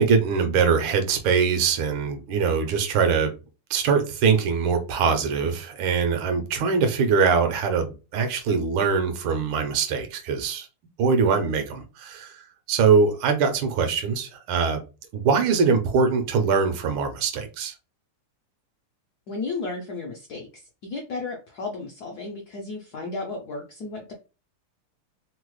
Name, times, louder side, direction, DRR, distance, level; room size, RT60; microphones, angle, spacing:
voice 1, 0.0-3.3 3.7-10.7 11.0-14.8 15.1-17.7, right 5 dB, 75° right, 1.5 m, -22 dB
voice 2, 19.3-24.1, left 3 dB, 80° left, 0.9 m, -34 dB
3.6 x 2.0 x 3.1 m
omnidirectional pair, 2.4 m